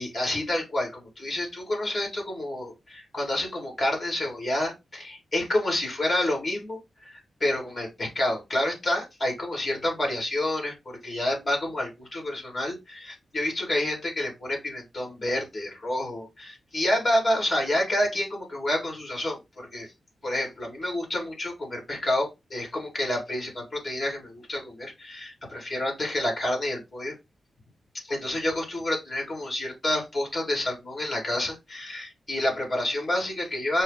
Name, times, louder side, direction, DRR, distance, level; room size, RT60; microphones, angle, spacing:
voice 1, 0.0-19.9 20.2-27.2 28.0-33.8, left 1 dB, 25° left, 0 dB, 2.3 m, -29 dB
5.4 x 2.3 x 3.8 m, 0.23 s
wide cardioid pair, 165°, 0 cm